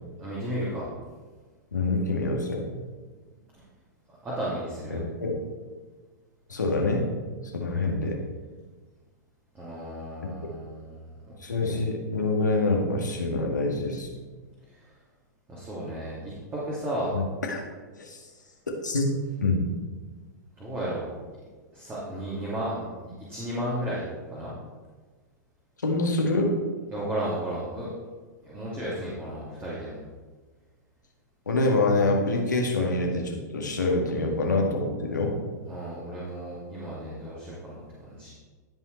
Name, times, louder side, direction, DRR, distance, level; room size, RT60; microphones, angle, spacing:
voice 1, 0.2-0.9 4.1-5.0 9.5-11.2 11.6-11.8 14.7-14.8 15.5-17.2 20.6-21.1 21.7-24.5 26.9-27.9 28.4-30.0 35.7-38.3, right 1 dB, 20° right, -7 dB, 2.4 m, -34 dB
voice 2, 1.7-2.7 4.9-5.4 6.5-7.1 7.6-8.2 10.2-10.3 11.4-14.1 17.1-17.2 17.5-17.6 18.0-18.2 18.8-19.7 25.8-26.5 31.5-35.4, left 2 dB, 80° left, 0 dB, 1.8 m, -26 dB
16.0 x 5.6 x 3.3 m, 1.4 s
figure-of-eight pair, 105°, 10 cm